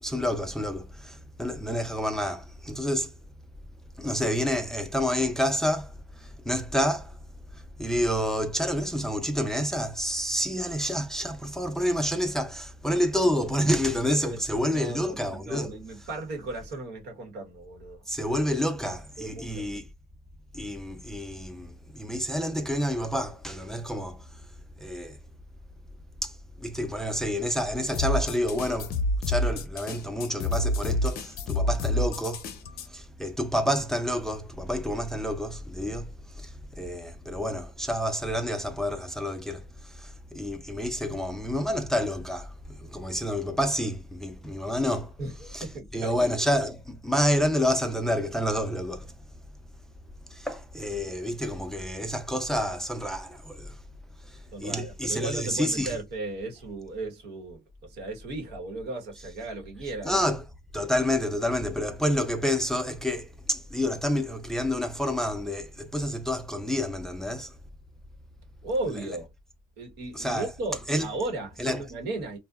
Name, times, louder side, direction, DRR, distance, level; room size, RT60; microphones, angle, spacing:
voice 1, 0.0-3.1 4.0-7.2 7.5-15.8 18.1-19.9 20.5-24.4 24.8-25.2 26.2-29.0 29.3-32.5 32.9-45.1 45.5-45.7 45.9-49.1 50.3-53.8 54.2-56.0 60.0-60.4 60.7-67.5 70.1-70.5 70.9-71.1 71.6-71.8, equal, 5° left, 0.4 m, -29 dB
voice 2, 14.7-18.1 19.2-19.7 45.2-46.2 54.5-60.2 68.6-69.3 69.8-72.4, right 2 dB, 80° right, 1.0 m, -36 dB
sound 1, 27.9-32.9, left 1 dB, 65° left, 0.6 m, -28 dB
2.6 x 2.1 x 2.3 m
cardioid pair, 110°, 17 cm